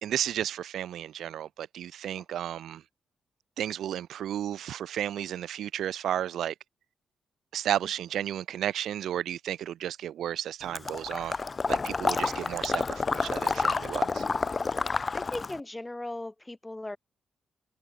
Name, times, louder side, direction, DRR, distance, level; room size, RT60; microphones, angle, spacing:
voice 1, 0.0-2.8 3.6-6.5 7.5-11.4 11.7-14.2, right 10 dB, 80° right, 2.1 m, -33 dB
Water / Liquid, 10.7-15.6, left 4 dB, 35° left, 1.1 m, -29 dB
voice 2, 15.1-17.0, left 2 dB, 15° left, 6.2 m, -38 dB
open air
cardioid pair, 75°, 0 cm